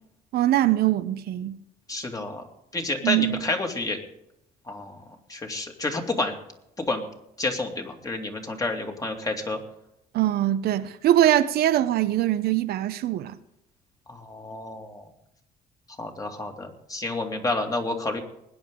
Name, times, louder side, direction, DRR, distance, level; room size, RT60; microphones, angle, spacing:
voice 1, 0.3-1.6 3.0-3.4 10.1-13.3, right 13 dB, 70° right, 0.7 m, -22 dB
voice 2, 1.9-2.4 2.7-4.0 4.7-5.0 5.3-6.3 6.8-7.0 7.4-9.6 14.1-15.0 16.0-18.2, left 2 dB, 20° left, 2.4 m, -29 dB
20.5 x 9.8 x 3.8 m
cardioid pair, 110°, 17 cm